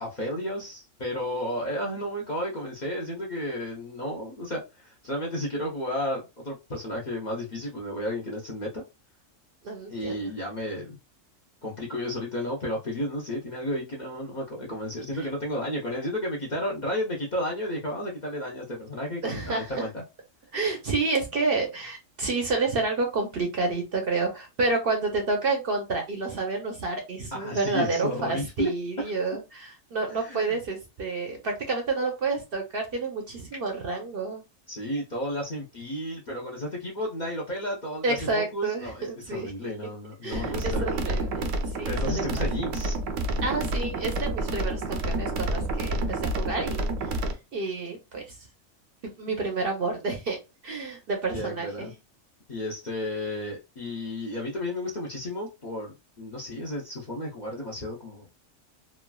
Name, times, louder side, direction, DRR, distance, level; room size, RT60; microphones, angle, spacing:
voice 1, 0.0-8.8 9.9-11.0 11.6-20.0 27.3-28.7 29.0-29.1 30.1-30.6 34.7-40.9 41.9-43.0 51.3-51.9 52.5-58.3, left 1 dB, 45° left, 0.6 m, -32 dB
voice 2, 9.6-10.3 19.2-19.6 20.5-34.4 38.0-39.5 40.2-42.4 43.4-46.9 47.5-48.2 49.2-51.9, right 3 dB, 55° right, 0.7 m, -29 dB
sound 1, 40.3-47.3, right 1 dB, 80° right, 1.0 m, -29 dB
3.1 x 2.3 x 2.2 m
omnidirectional pair, 1.4 m